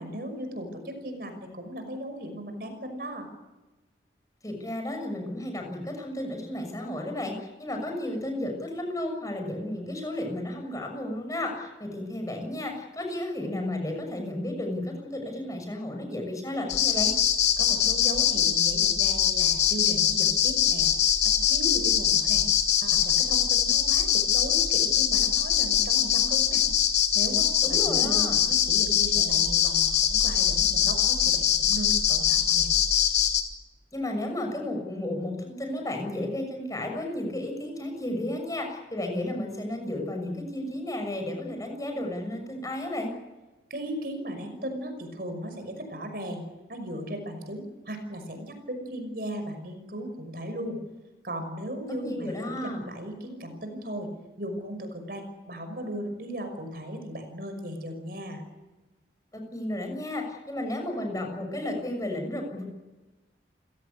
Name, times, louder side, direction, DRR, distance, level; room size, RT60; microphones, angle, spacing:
voice 1, 0.0-3.3 17.6-20.9 21.2-22.5 22.8-26.6 27.1-32.7 43.7-46.4 46.7-50.8 51.2-54.1 54.4-58.4, equal, 55° right, 7 dB, 5.7 m, -37 dB
voice 2, 4.4-17.1 27.6-28.4 33.9-43.1 52.0-52.8 59.3-62.6, left 1 dB, 20° left, 3 dB, 6.4 m, -33 dB
sound 1, 16.7-33.4, left 9 dB, 70° left, 2.9 m, -23 dB
30.0 x 17.0 x 8.4 m, 1.1 s
head